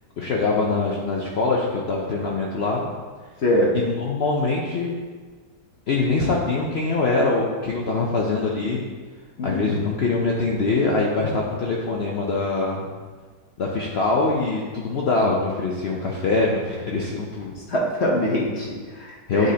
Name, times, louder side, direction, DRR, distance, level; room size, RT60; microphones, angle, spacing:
voice 1, 0.2-2.9 3.7-4.9 5.9-8.8 9.4-12.9 13.6-17.5 19.3-19.5, left 3 dB, 85° left, -2 dB, 0.5 m, -23 dB
voice 2, 3.4-3.7 9.4-9.8 17.7-19.5, left 1 dB, 55° left, -3 dB, 0.8 m, -23 dB
9.4 x 4.0 x 2.8 m, 1.5 s
omnidirectional pair, 1.9 m